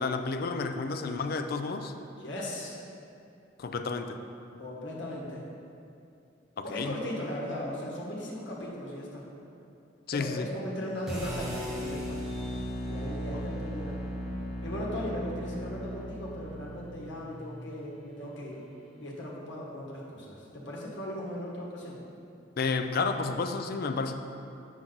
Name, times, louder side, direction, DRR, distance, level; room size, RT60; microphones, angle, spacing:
voice 1, 0.0-1.9 3.6-4.2 6.6-6.9 10.1-10.4 13.3-13.5 22.6-24.1, left 4 dB, 50° left, 7 dB, 0.4 m, -31 dB
voice 2, 2.2-2.8 4.6-5.4 6.6-9.3 10.1-12.2 12.9-14.0 14.6-18.7 19.0-22.0, equal, 65° left, -4 dB, 1.4 m, -37 dB
sound 1, 11.1-17.2, equal, 5° right, 1.3 m, -36 dB
7.4 x 6.1 x 3.9 m, 2.6 s
head